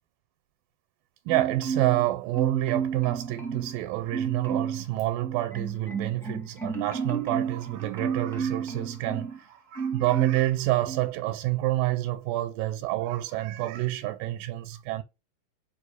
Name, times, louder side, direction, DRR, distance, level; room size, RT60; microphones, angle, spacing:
Marimba xylophone, 1.3-2.1 2.3-3.8 4.1-4.8 5.2-9.4 9.7-10.5 10.9-11.1, right 6 dB, 5° left, 0.4 m, -32 dB
voice 1, 1.3-15.0, right 17 dB, 90° right, 2.3 m, -28 dB
5.3 x 5.1 x 4.8 m
omnidirectional pair, 3.9 m